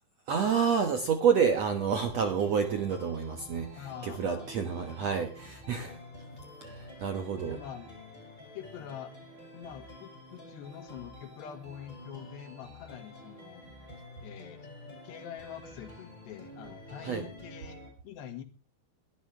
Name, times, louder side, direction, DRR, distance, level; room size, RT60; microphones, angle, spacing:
voice 1, 0.3-6.0 6.6-7.6 17.0-17.2, right 6 dB, 70° right, 6 dB, 1.5 m, -29 dB
sound 1, 1.9-17.9, left 1 dB, 10° left, 5.2 m, -49 dB
voice 2, 3.8-4.5 7.4-7.9 8.6-9.2 9.5-13.7 14.2-14.7 15.0-18.4, left 9 dB, 80° left, 8 dB, 3.9 m, -45 dB
22.0 x 12.5 x 3.4 m, 0.34 s
omnidirectional pair, 4.8 m